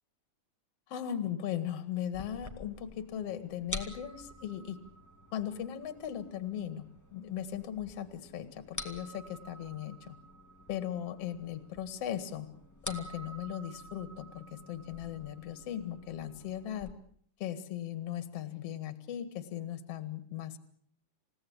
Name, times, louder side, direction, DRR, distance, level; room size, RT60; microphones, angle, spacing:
voice 1, 0.9-4.8 5.3-6.9 7.1-10.2 10.7-12.5 12.8-16.9 17.4-20.6, left 10 dB, 55° left, 11 dB, 2.8 m, -38 dB
sound 1, 2.1-16.9, left 1 dB, 5° left, 1.8 m, -48 dB
29.0 x 17.0 x 8.8 m, 0.62 s
omnidirectional pair, 3.4 m